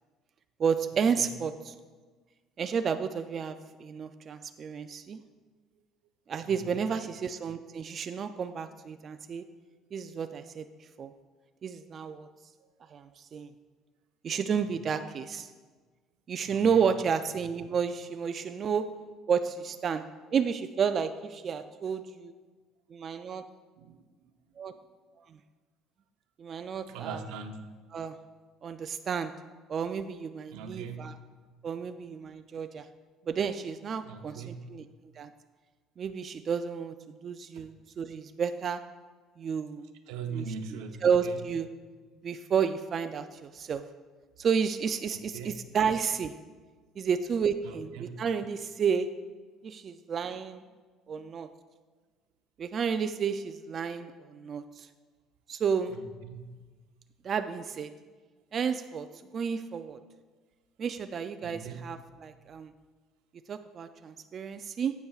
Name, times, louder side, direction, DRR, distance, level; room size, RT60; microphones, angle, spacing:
voice 1, 0.6-1.7 2.6-5.2 6.3-9.4 9.9-10.7 11.0-11.1 11.6-12.3 12.9-13.5 14.2-15.5 16.3-18.9 19.3-20.0 20.3-22.3 22.9-23.4 24.6-24.7 25.3-25.4 26.4-27.2 27.9-28.2 28.6-29.3 29.7-31.2 31.6-32.9 33.3-34.9 35.2-35.3 36.0-36.9 37.2-38.8 39.4-39.9 40.3-40.4 41.0-41.7 42.2-43.8 44.4-46.3 47.0-49.1 49.6-50.6 51.1-51.5 52.6-54.9 55.5-55.9 57.2-57.9 58.5-59.1 59.3-60.0 60.8-62.7 63.5-64.9, right 6 dB, 35° right, 9 dB, 0.3 m, -31 dB
voice 2, 6.4-6.9 12.6-13.0 14.6-14.8 16.5-16.9 23.8-24.3 26.9-27.7 30.5-31.2 34.0-34.7 37.5-37.7 40.1-41.4 45.1-45.5 47.6-48.2 55.9-56.6 61.4-61.9, right 5 dB, 90° right, 7 dB, 0.7 m, -41 dB
12.0 x 8.2 x 2.3 m, 1.4 s
cardioid pair, 135°, 0 cm